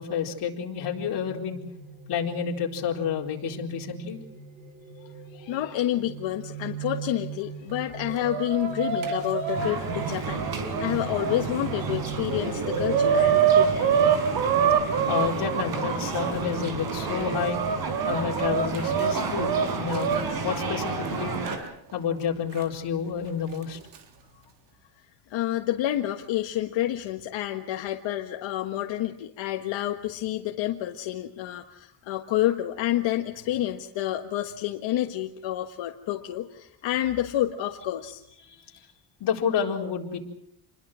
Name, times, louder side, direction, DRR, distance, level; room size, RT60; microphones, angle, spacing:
voice 1, 0.0-1.6 2.1-4.2 15.1-17.6 18.0-21.4 21.9-23.8 38.4-38.9 39.2-40.2, left 7 dB, 60° left, 0 dB, 4.3 m, -30 dB
sound 1, 1.0-20.1, right 7 dB, 20° right, 6.2 m, -42 dB
voice 2, 5.3-13.9 25.3-38.2, left 13 dB, 90° left, 4 dB, 1.6 m, -29 dB
Chicken rooster, 7.9-11.4 11.9-12.0 12.3-16.3 16.9-20.2 21.5-21.6 22.6-22.7 23.6-24.0, right 8 dB, 70° right, 3.6 m, -25 dB
sound 2, 9.5-21.6, right 4 dB, 55° right, 4.9 m, -32 dB
28.5 x 21.5 x 6.3 m, 0.76 s
cardioid pair, 145°, 44 cm